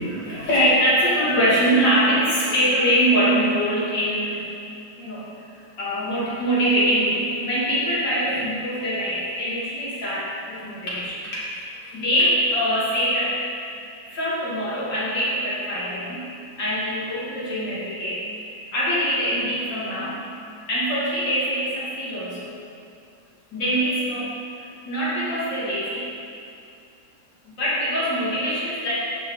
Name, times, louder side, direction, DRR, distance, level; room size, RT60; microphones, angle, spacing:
voice 1, 0.0-4.5 5.0-5.5 5.8-11.5 11.9-13.4 14.0-16.3 16.6-20.2 20.7-22.6 23.5-26.1 27.4-28.9, equal, 70° left, -10 dB, 3.3 m, -23 dB
10.5 x 6.8 x 4.0 m, 2.5 s
omnidirectional pair, 2.0 m